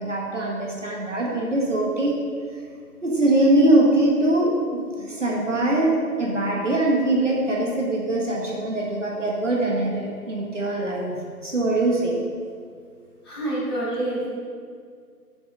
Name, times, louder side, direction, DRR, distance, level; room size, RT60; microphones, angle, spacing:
voice 1, 0.0-2.1 3.0-4.5 5.0-11.1 11.4-12.2, right 1 dB, 50° right, -3 dB, 1.6 m, -22 dB
voice 2, 13.2-14.3, right 1 dB, 15° left, -12 dB, 2.0 m, -27 dB
8.3 x 6.1 x 5.5 m, 2.1 s
figure-of-eight pair, 160°, 48 cm